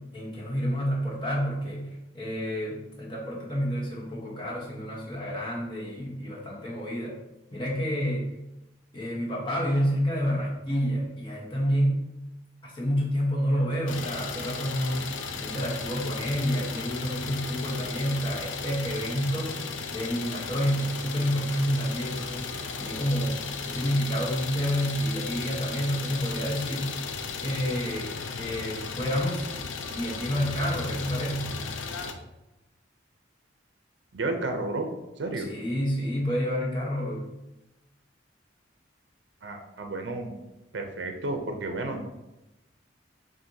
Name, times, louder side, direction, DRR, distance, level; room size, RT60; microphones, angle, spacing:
voice 1, 0.0-7.2 7.5-8.4 8.9-12.1 12.6-19.6 19.9-27.0 27.4-29.5 29.9-31.6 35.4-37.3, equal, 25° left, -4 dB, 1.1 m, -29 dB
Idling, 13.9-32.1, left 5 dB, 90° left, 0.5 m, -35 dB
voice 2, 34.1-34.9 35.2-35.5 39.4-40.3 40.7-42.1, right 2 dB, 70° right, 4 dB, 0.6 m, -31 dB
7.5 x 2.5 x 2.7 m, 0.94 s
head